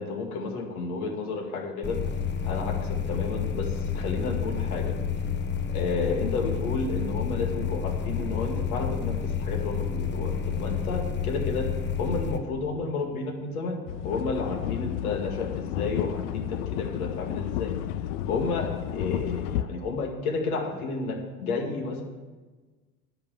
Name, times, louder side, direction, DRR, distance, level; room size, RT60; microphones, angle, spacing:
voice 1, 0.0-2.0 2.4-5.0 5.7-11.6 12.0-17.7 18.3-22.0, left 4 dB, 70° left, 3 dB, 2.3 m, -31 dB
sound 1, 1.8-12.4, left 6 dB, 25° left, 1.0 m, -29 dB
sound 2, 13.9-19.6, left 11 dB, 55° left, 0.6 m, -31 dB
10.5 x 6.0 x 8.0 m, 1.3 s
hypercardioid pair, 85°, 45 cm